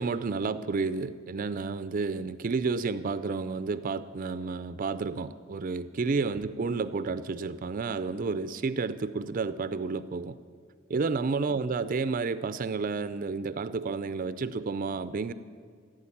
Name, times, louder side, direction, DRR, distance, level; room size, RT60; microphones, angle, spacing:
voice 1, 0.0-10.4 10.9-15.3, right 4 dB, 40° right, 13 dB, 0.4 m, -31 dB
15.5 x 9.1 x 8.5 m, 2.1 s
head